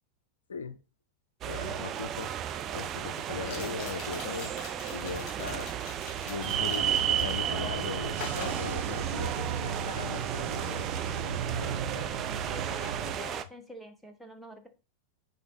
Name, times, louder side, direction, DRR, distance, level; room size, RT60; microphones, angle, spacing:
sound 1, 1.4-13.4, right 10 dB, 30° right, 0.5 m, -33 dB
voice 1, 1.5-2.3 2.7-4.5 4.9-5.7 6.2-10.8 11.1-12.1, left 6 dB, 70° left, 12 dB, 0.4 m, -39 dB
sound 2, 1.7-1.8 3.4-7.6 8.1-9.5 9.7-10.1, left 7 dB, 35° left, 2.6 m, -46 dB
sound 3, 6.4-13.2, right 7 dB, 55° right, 1.2 m, -36 dB
voice 2, 12.3-14.7, left 1 dB, ahead, 4 dB, 1.0 m, -46 dB
6.8 x 4.2 x 4.0 m, 0.34 s
figure-of-eight pair, 90°, 0 cm